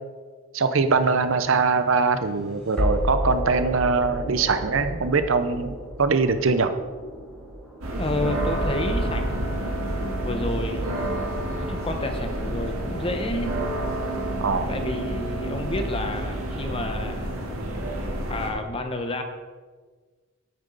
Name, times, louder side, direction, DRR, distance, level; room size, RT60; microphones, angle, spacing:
voice 1, 0.5-6.7 14.4-14.7, right 4 dB, 65° right, 10 dB, 0.6 m, -22 dB
sound 1, 0.9-12.0, equal, 5° left, 3.2 m, -34 dB
sound 2, 7.8-18.5, right 1 dB, 85° right, 1.8 m, -29 dB
voice 2, 8.0-9.5 10.2-10.9 11.5-13.5 14.7-17.4 18.3-19.2, left 1 dB, 25° left, 6 dB, 0.8 m, -30 dB
9.0 x 8.7 x 4.0 m, 1.4 s
head